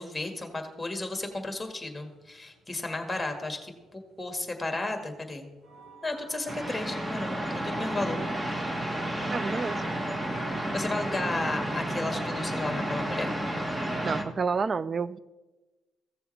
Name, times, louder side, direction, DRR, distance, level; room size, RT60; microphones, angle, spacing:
voice 1, 0.0-5.5 6.0-7.4 7.6-8.2 10.5-13.3, left 2 dB, 10° left, 1.7 m, -33 dB
sound 1, 1.8-10.7, right 4 dB, 75° right, 2.8 m, -48 dB
sound 2, 6.5-14.2, right 1 dB, 20° right, 1.2 m, -31 dB
voice 2, 9.3-9.8 14.0-15.2, right 5 dB, 40° right, 0.3 m, -29 dB
15.5 x 6.9 x 3.2 m
cardioid pair, 90°, 0 cm